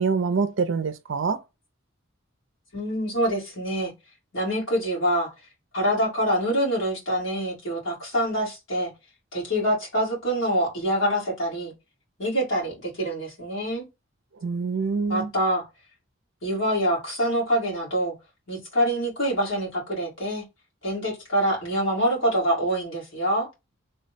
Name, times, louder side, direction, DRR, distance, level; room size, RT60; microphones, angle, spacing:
voice 1, 0.0-1.4 14.4-15.3, right 5 dB, 65° right, 0.4 m, -25 dB
voice 2, 2.7-3.9 4.3-5.3 5.7-8.9 9.3-11.7 12.2-13.8 15.1-15.7 16.4-18.1 18.5-20.4 20.8-23.5, equal, 70° left, 2.0 m, -25 dB
3.4 x 2.2 x 4.0 m
head